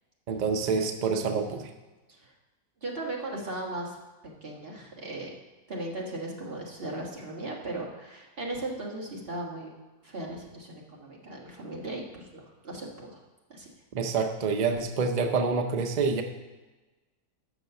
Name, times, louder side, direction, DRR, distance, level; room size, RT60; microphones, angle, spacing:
voice 1, 0.3-1.7 13.9-16.2, right 4 dB, 65° right, 6 dB, 0.4 m, -27 dB
voice 2, 2.8-4.0 4.4-5.3 5.7-9.7 10.0-13.2 13.5-13.7, right 2 dB, 40° right, -2 dB, 1.8 m, -37 dB
6.9 x 6.2 x 6.8 m, 1.2 s
omnidirectional pair, 1.6 m